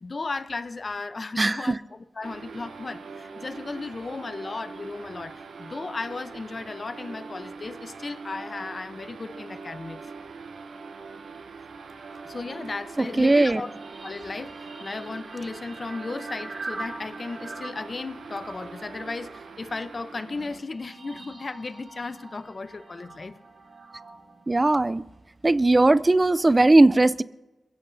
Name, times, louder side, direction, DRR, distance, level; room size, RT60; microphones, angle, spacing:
voice 1, 0.0-1.8 2.2-10.0 12.2-13.7 14.0-23.4, left 3 dB, 50° left, 0.8 m, -35 dB
voice 2, 1.4-1.8 13.0-13.6 24.5-25.0 25.4-27.2, right 2 dB, 30° right, 0.5 m, -19 dB
sound 1, 2.2-20.6, right 4 dB, 85° right, 0.9 m, -42 dB
sound 2, 11.9-25.6, right 3 dB, 65° right, 2.5 m, -44 dB
27.0 x 16.0 x 2.7 m
cardioid pair, 55°, 0 cm